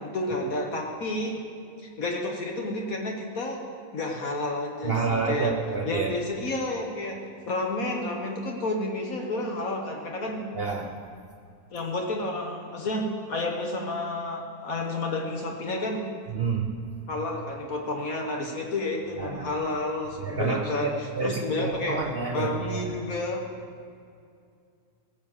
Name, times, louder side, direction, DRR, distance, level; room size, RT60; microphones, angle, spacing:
voice 1, 0.0-1.4 1.8-3.6 3.9-5.6 5.9-10.5 11.7-16.1 17.1-22.0 22.3-23.4, left 2 dB, 70° left, 1 dB, 1.7 m, -30 dB
voice 2, 4.8-6.1 10.5-10.9 16.3-16.7 19.2-19.5 20.2-22.8, right 5 dB, 45° right, 3 dB, 1.0 m, -28 dB
17.5 x 7.3 x 7.3 m, 2.3 s
omnidirectional pair, 1.6 m